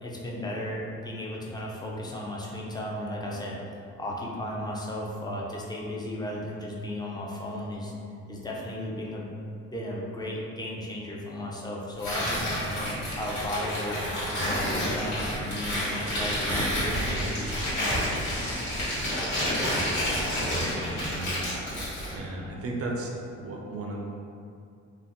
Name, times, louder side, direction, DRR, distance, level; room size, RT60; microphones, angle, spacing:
voice 1, 0.0-3.6 4.0-7.9 8.3-9.3 9.7-12.8 13.1-14.0 14.4-18.0, left 1 dB, 15° left, -3 dB, 0.5 m, -35 dB
Tearing, 12.0-22.2, equal, 85° left, 1.2 m, -29 dB
voice 2, 19.7-21.4 22.1-24.0, right 2 dB, 50° right, -1 dB, 0.5 m, -36 dB
2.7 x 2.0 x 3.5 m, 2.4 s
cardioid pair, 90°, 30 cm